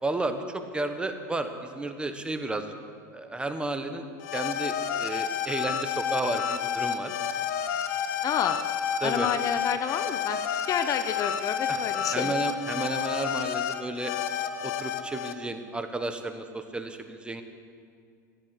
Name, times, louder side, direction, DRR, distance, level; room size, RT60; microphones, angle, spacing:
voice 1, 0.0-2.7 3.1-4.1 4.3-7.1 9.0-9.3 11.7-11.8 12.1-14.1 14.6-17.4, right 2 dB, 10° right, 8 dB, 1.3 m, -32 dB
sound 1, 4.2-15.3, left 8 dB, 65° left, 1.0 m, -30 dB
voice 2, 8.2-8.6 9.0-10.4 10.7-12.3, left 8 dB, 35° left, 10 dB, 0.9 m, -29 dB
15.0 x 10.5 x 8.5 m, 2.3 s
hypercardioid pair, 105°, 10 cm